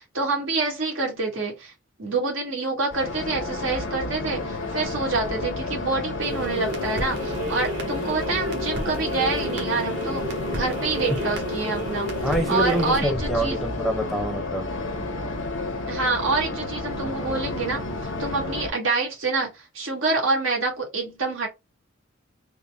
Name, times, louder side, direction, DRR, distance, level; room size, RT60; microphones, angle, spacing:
voice 1, 0.0-1.7 2.0-12.1 12.5-13.6 15.9-17.8 18.2-21.5, right 3 dB, 80° right, 1.6 m, -27 dB
sound 1, 2.9-18.7, left 2 dB, 70° left, 0.7 m, -31 dB
sound 2, 6.2-14.2, equal, 60° right, 1.2 m, -32 dB
voice 2, 12.2-14.7, right 1 dB, ahead, 0.6 m, -26 dB
4.0 x 2.1 x 3.4 m
head